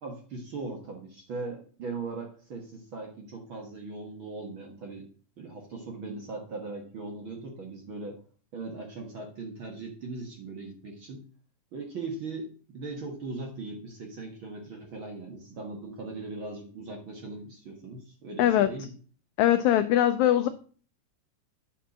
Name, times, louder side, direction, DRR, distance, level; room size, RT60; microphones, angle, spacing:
voice 1, 0.0-5.0 5.4-8.2 8.5-11.2 11.7-18.9 20.4-20.5, right 3 dB, 50° right, 1 dB, 1.6 m, -39 dB
voice 2, 18.4-18.7 19.4-20.5, left 12 dB, 90° left, 10 dB, 1.6 m, -21 dB
9.2 x 4.4 x 6.1 m, 0.42 s
omnidirectional pair, 3.9 m